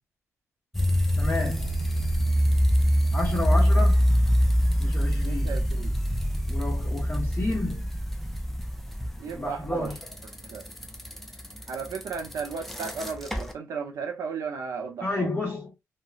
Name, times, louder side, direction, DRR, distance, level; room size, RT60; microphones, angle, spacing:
sound 1, 0.7-13.5, equal, 5° left, 0.5 m, -25 dB
voice 1, 1.2-1.8 3.1-4.1 4.8-5.5 6.5-7.9 9.3-10.0 15.0-15.7, left 2 dB, 25° left, 1.1 m, -31 dB
voice 2, 5.2-5.9 9.2-9.9 10.4-10.6 11.7-15.3, right 5 dB, 75° right, 0.7 m, -35 dB
2.9 x 2.1 x 2.3 m
cardioid pair, 105°, 6 cm